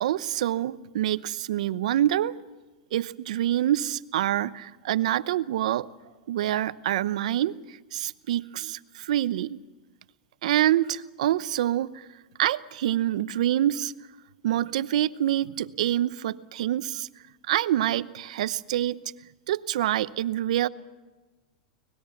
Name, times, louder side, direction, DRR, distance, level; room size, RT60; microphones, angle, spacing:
voice 1, 0.0-2.3 2.9-5.9 6.3-9.6 10.4-12.1 12.4-13.9 14.4-17.1 17.5-19.0 19.5-20.7, right 12 dB, 75° right, 16 dB, 0.8 m, -26 dB
25.0 x 19.5 x 7.2 m, 1.2 s
hypercardioid pair, 125°, 4 cm